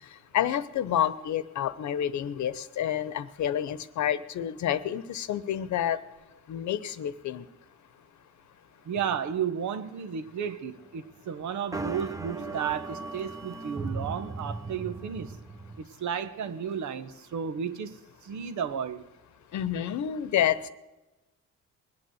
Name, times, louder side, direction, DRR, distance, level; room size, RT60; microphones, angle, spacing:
voice 1, 0.3-6.0 6.5-7.5 19.5-20.7, left 10 dB, 70° left, 14 dB, 1.0 m, -29 dB
voice 2, 8.8-15.3 15.8-19.0, right 7 dB, 75° right, 11 dB, 1.2 m, -33 dB
sound 1, 11.7-15.8, right 3 dB, 10° right, 0.9 m, -37 dB
20.5 x 8.8 x 7.9 m, 1.1 s
cardioid pair, 90°, 30 cm